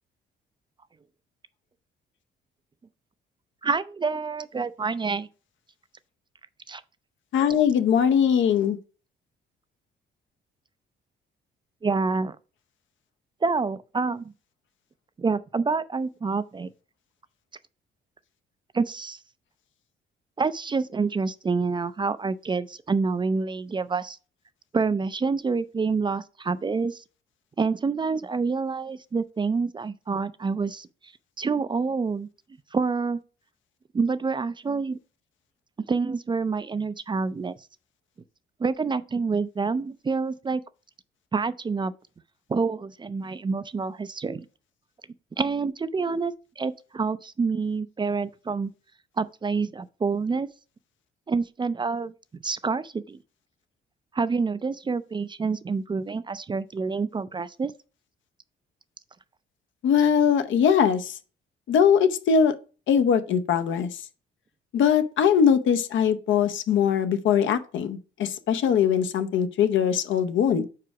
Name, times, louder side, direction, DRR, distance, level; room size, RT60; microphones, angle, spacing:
voice 1, 3.6-5.3 6.7-6.8 11.8-12.4 13.4-14.3 15.2-16.7 18.7-19.2 20.4-24.2 24.7-27.0 27.6-30.9 31.4-32.3 32.7-33.2 33.9-35.0 35.9-37.6 38.6-40.6 41.3-41.9 42.5-44.5 45.4-48.7 49.2-50.5 51.3-52.1 52.4-53.2 54.1-57.7, right 4 dB, 25° right, 0.4 m, -27 dB
voice 2, 7.3-8.8 59.8-61.1 61.7-62.5 62.9-63.9 64.7-70.6, left 7 dB, 75° left, 0.8 m, -21 dB
4.9 x 4.7 x 5.8 m
cardioid pair, 90°, 20 cm